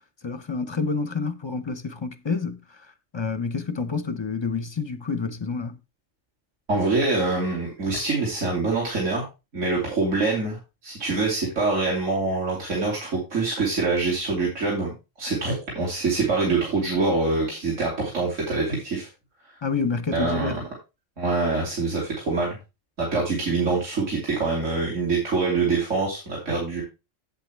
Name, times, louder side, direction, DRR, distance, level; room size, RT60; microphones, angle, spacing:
voice 1, 0.2-2.9 3.1-5.8 19.6-20.7, left 4 dB, 30° left, 0.5 m, -28 dB
voice 2, 6.7-9.3 9.5-19.1 20.1-20.6 21.2-22.6 23.0-26.8, right 3 dB, 70° right, 2.9 m, -25 dB
8.2 x 8.2 x 3.4 m
omnidirectional pair, 1.4 m